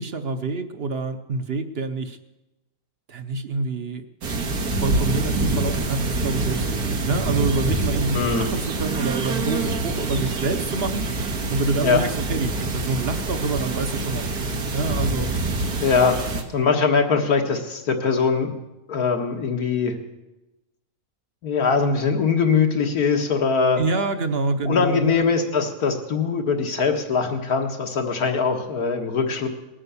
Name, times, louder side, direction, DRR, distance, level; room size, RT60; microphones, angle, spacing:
voice 1, 0.0-2.2 3.1-4.0 4.6-15.3 23.8-25.2, right 3 dB, 50° right, 8 dB, 0.9 m, -27 dB
sound 1, 4.2-16.4, right 3 dB, 90° right, 1.9 m, -26 dB
voice 2, 8.1-8.5 11.8-12.0 15.8-16.2 16.5-18.5 18.9-20.0 21.4-23.8 24.7-29.5, left 5 dB, 80° left, 4 dB, 2.0 m, -21 dB
19.5 x 8.8 x 7.0 m, 1.0 s
omnidirectional pair, 1.6 m